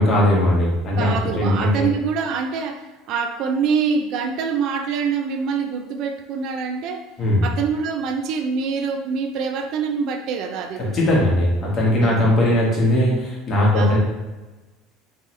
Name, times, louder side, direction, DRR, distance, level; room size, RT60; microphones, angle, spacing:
voice 1, 0.0-1.9 7.2-7.4 10.9-14.0, left 1 dB, 40° left, -4 dB, 1.4 m, -19 dB
voice 2, 1.0-7.1 7.4-11.0 12.0-12.4 13.7-14.0, right 5 dB, 60° right, 6 dB, 0.4 m, -25 dB
3.4 x 2.9 x 3.3 m, 1.2 s
supercardioid pair, 90°, 0 cm